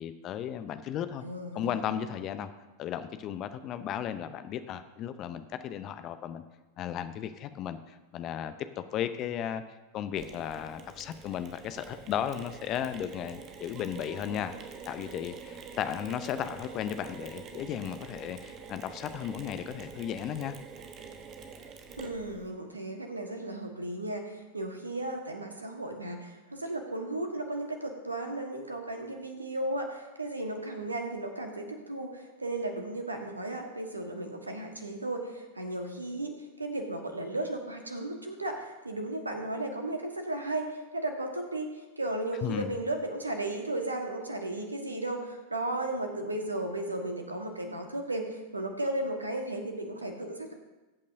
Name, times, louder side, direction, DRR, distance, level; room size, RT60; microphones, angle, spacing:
voice 1, 0.0-1.2 1.5-2.5 2.8-6.4 6.8-9.6 9.9-14.6 14.9-20.6 42.4-42.7, left 9 dB, 35° left, 11 dB, 0.7 m, -35 dB
voice 2, 1.2-2.0 22.0-50.5, right 1 dB, 80° right, 4 dB, 1.5 m, -35 dB
Mechanisms, 10.2-22.5, right 5 dB, 30° right, 1.2 m, -46 dB
20.0 x 8.5 x 2.7 m, 1.1 s
figure-of-eight pair, 90°, 0 cm